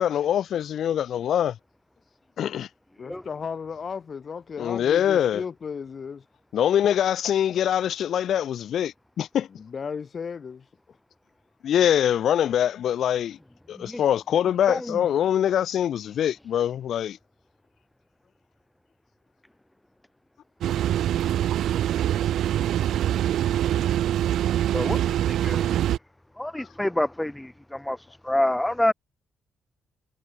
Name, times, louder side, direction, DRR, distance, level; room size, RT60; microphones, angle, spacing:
voice 1, 0.0-1.5 2.4-2.7 4.6-5.4 6.5-9.5 11.6-13.4 13.7-17.2, left 10 dB, 60° left, 1.0 m, -23 dB
voice 2, 3.0-6.2 9.5-11.0 28.1-28.2, left 6 dB, 35° left, 1.0 m, -35 dB
voice 3, 14.7-15.0 24.7-25.0 25.3-25.7 26.4-28.0 28.2-28.9, left 1 dB, 5° left, 0.5 m, -27 dB
sound 1, 20.6-26.0, right 11 dB, 75° right, 0.4 m, -24 dB
cardioid pair, 150°, 0 cm